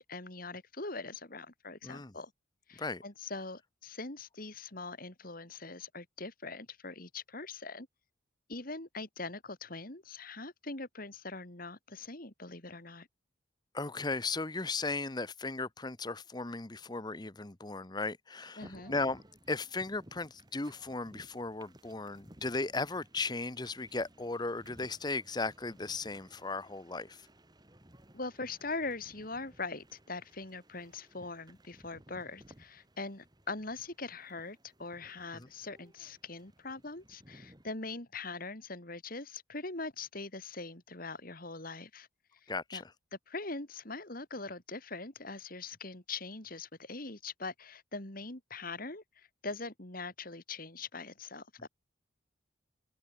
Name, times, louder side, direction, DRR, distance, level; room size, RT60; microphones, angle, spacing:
voice 1, 0.0-2.3 2.7-7.9 8.5-13.1 18.6-18.9 28.1-42.1 42.4-42.8 43.3-51.7, left 3 dB, 45° left, 3.0 m, -42 dB
voice 2, 1.8-2.1 2.8-3.0 13.7-27.3 35.3-35.5 42.5-42.9, left 3 dB, 20° left, 0.8 m, -36 dB
sound 1, 18.6-37.7, right 1 dB, 20° right, 3.3 m, -59 dB
head